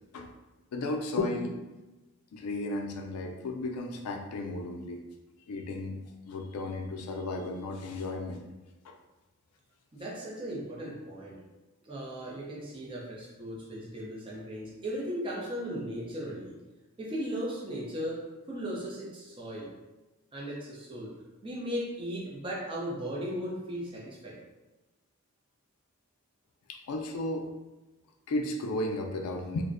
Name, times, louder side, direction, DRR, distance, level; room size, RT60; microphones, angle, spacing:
voice 1, 0.7-1.6 2.3-5.0 5.5-6.0 6.2-8.4 8.8-8.9 26.7-27.5 28.3-29.6, left 2 dB, 85° left, 3 dB, 0.4 m, -34 dB
voice 2, 9.9-11.4 11.8-16.6 17.0-19.7 20.3-21.1 21.4-24.4, equal, 25° right, -4 dB, 0.4 m, -37 dB
2.5 x 2.0 x 2.5 m, 1.1 s
head